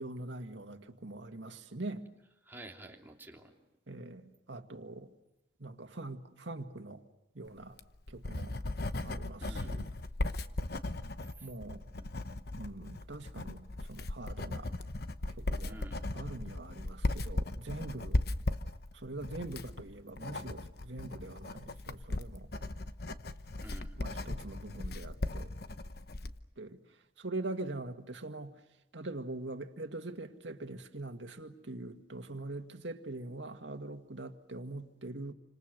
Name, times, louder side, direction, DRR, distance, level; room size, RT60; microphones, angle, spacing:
voice 1, 0.0-2.1 3.9-4.2 4.5-5.1 5.6-7.0 7.4-7.8 8.1-8.5 9.0-9.9 11.4-11.8 12.6-14.7 15.4-15.8 16.1-18.3 18.9-22.5 24.0-25.5 26.6-26.8 27.2-28.6 28.9-35.3, right 2 dB, 90° right, 1.9 m, -43 dB
voice 2, 2.4-3.6 9.4-9.7 11.4-11.5 15.7-16.1 23.6-24.0, right 1 dB, 10° right, 3.1 m, -50 dB
Writing, 7.6-26.4, left 2 dB, 60° left, 1.0 m, -37 dB
29.5 x 26.0 x 6.7 m
head